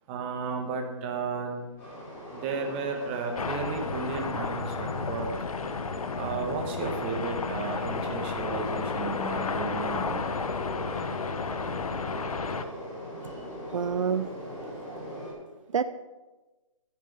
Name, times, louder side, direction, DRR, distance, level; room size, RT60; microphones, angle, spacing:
voice 1, 0.1-1.7 2.3-5.3 6.2-10.2, right 5 dB, 20° right, 3 dB, 1.5 m, -33 dB
Train, 1.8-15.3, equal, 15° left, 4.5 m, -40 dB
sound 1, 3.3-12.6, left 5 dB, 80° left, 1.1 m, -32 dB
voice 2, 13.7-14.3 14.6-15.8, right 7 dB, 65° right, 13 dB, 0.6 m, -31 dB
14.5 x 10.5 x 5.4 m, 1.2 s
hypercardioid pair, 170°, 18 cm